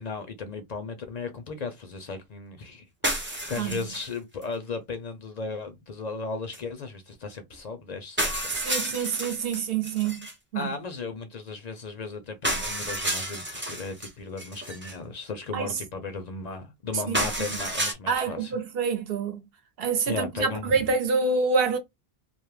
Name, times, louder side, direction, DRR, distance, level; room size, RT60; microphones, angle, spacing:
voice 1, 0.0-2.9 3.1-9.1 10.5-18.6 20.1-20.9, left 4 dB, 55° left, 0.5 m, -36 dB
sound 1, 3.0-4.1 4.4-4.5 6.5-6.6 7.5-7.6 8.2-10.3 12.4-14.1 14.4-14.9 17.1-17.9, right 1 dB, 20° right, 0.4 m, -31 dB
voice 2, 8.5-10.3 10.5-10.7 15.5-15.8 17.1-17.2 18.1-19.4 19.8-21.8, right 4 dB, 70° right, 0.9 m, -27 dB
2.3 x 2.0 x 3.0 m
omnidirectional pair, 1.0 m